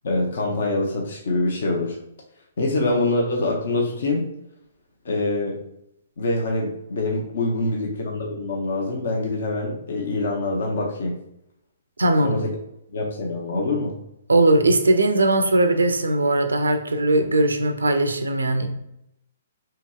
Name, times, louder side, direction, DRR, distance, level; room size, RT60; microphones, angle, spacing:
voice 1, 0.0-2.0 2.6-4.2 5.0-5.6 6.2-11.1 12.2-12.5 12.9-13.9, left 2 dB, 65° left, -1 dB, 0.6 m, -25 dB
voice 2, 12.0-12.3 14.3-18.7, right 2 dB, 85° right, 6 dB, 0.4 m, -19 dB
2.9 x 2.8 x 2.2 m, 0.80 s
hypercardioid pair, 130°, 0 cm